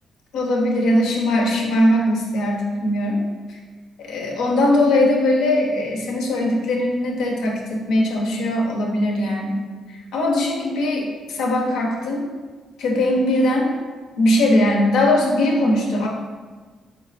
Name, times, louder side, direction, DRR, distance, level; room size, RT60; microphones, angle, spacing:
voice 1, 0.3-3.2 4.0-9.6 10.1-12.3 12.8-13.7 14.2-16.1, left 1 dB, 85° left, 0 dB, 0.8 m, -20 dB
3.6 x 3.2 x 4.1 m, 1.4 s
cardioid pair, 90°, 0 cm